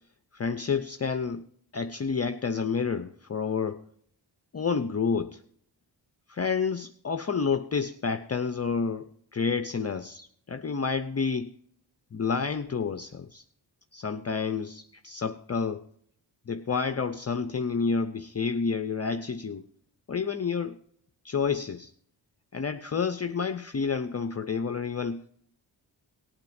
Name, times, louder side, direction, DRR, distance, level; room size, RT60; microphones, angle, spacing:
voice 1, 0.3-1.4 1.7-3.9 4.5-5.4 6.3-11.5 12.1-13.4 13.9-15.9 16.5-19.6 20.1-20.8 21.2-21.9 22.5-25.2, left 5 dB, 35° left, 0.6 m, -29 dB
19.0 x 8.9 x 2.6 m
wide cardioid pair, 85°, 45 cm